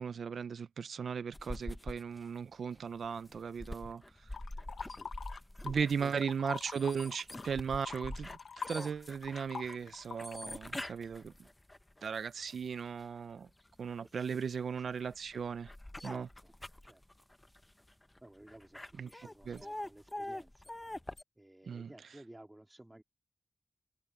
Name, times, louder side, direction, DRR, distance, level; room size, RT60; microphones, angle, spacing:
voice 1, 0.0-4.0 5.6-8.3 8.7-11.3 12.0-13.5 13.8-15.7 16.0-16.3 19.0-19.1 19.5-19.6 21.7-21.9, right 6 dB, 65° right, 0.4 m, -37 dB
sound 1, 1.3-13.1 13.6-21.2, left 1 dB, 10° left, 0.6 m, -45 dB
sound 2, 4.3-5.8 6.1-10.5, left 6 dB, 70° left, 0.9 m, -44 dB
voice 2, 5.6-6.1 9.6-9.8 14.0-14.5 14.8-14.9 16.0-17.0 18.2-20.7 21.4-23.0, right 1 dB, 10° right, 2.1 m, -55 dB
wide cardioid pair, 175°, 0 cm